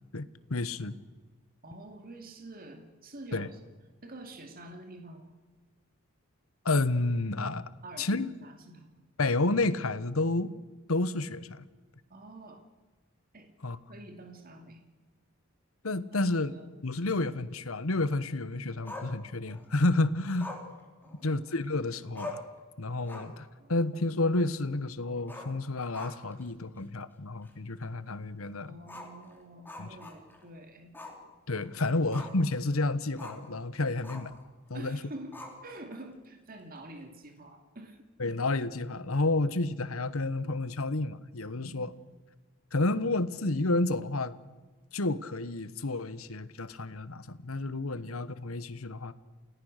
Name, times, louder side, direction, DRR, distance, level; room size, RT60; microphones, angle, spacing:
voice 1, 0.1-0.9 3.3-3.5 6.6-7.6 8.0-8.3 9.2-10.5 10.9-11.6 13.6-13.8 15.8-16.5 16.8-20.5 21.2-22.4 22.8-28.7 29.8-30.0 31.5-34.3 34.7-35.0 38.2-41.9 42.7-44.3 44.9-49.1, left 2 dB, 85° left, 15 dB, 1.2 m, -30 dB
voice 2, 1.6-3.6 4.0-5.4 7.8-8.9 12.1-12.7 13.3-13.5 13.9-14.8 16.1-16.7 21.0-21.4 23.6-23.7 28.7-30.9 31.7-32.1 34.7-38.0 41.5-41.8, right 1 dB, 45° right, 5 dB, 2.4 m, -47 dB
Growling, 18.9-19.7 20.4-21.6 21.9-22.0 22.2-22.6 23.0-23.5 23.8-23.9 25.2-26.4 26.8-26.9 27.4-27.5 28.8-30.5 30.9-31.2 31.6-32.5 33.2-33.5 34.0-34.4 35.3-35.9, left 2 dB, 10° left, 3.8 m, -44 dB
29.0 x 18.5 x 6.6 m, 1.3 s
head